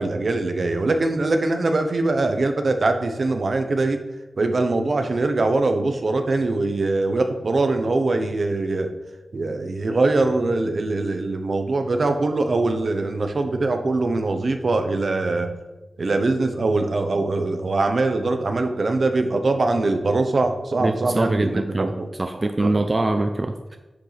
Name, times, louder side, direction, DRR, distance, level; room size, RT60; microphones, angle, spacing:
voice 1, 0.0-4.0 4.4-8.9 9.3-15.5 16.0-22.1 22.3-22.8, right 2 dB, 70° right, 6 dB, 1.0 m, -22 dB
voice 2, 20.8-21.9 22.2-23.8, right 2 dB, 35° right, 6 dB, 0.5 m, -23 dB
9.9 x 6.1 x 3.4 m, 1.1 s
cardioid pair, 60°, 0 cm